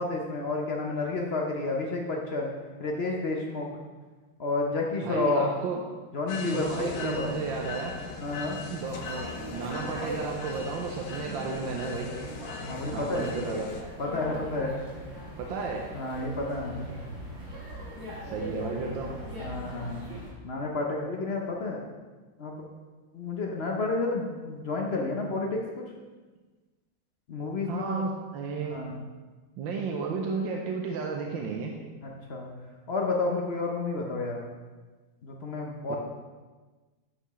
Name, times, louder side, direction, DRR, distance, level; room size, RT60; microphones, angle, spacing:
voice 1, 0.0-2.5 2.8-3.7 4.4-5.4 6.1-7.4 8.2-8.6 12.6-13.3 14.0-14.8 15.9-16.9 18.5-18.8 19.4-20.0 20.4-21.8 22.4-22.6 23.1-25.8 27.3-28.0 28.6-29.0 32.0-32.5 32.9-34.4 35.2-36.0, left 3 dB, 50° left, 0 dB, 0.7 m, -30 dB
voice 2, 5.0-5.8 6.4-7.9 8.7-12.1 12.9-13.7 15.4-15.9 18.2-19.1 27.6-28.8 29.6-31.7 35.9-36.0, right 4 dB, 70° right, 1 dB, 1.4 m, -33 dB
sound 1, 6.3-13.8, left 5 dB, 75° left, 1.5 m, -41 dB
sound 2, 6.6-20.3, equal, 55° right, 3.7 m, -41 dB
11.5 x 5.7 x 3.2 m, 1.3 s
omnidirectional pair, 2.3 m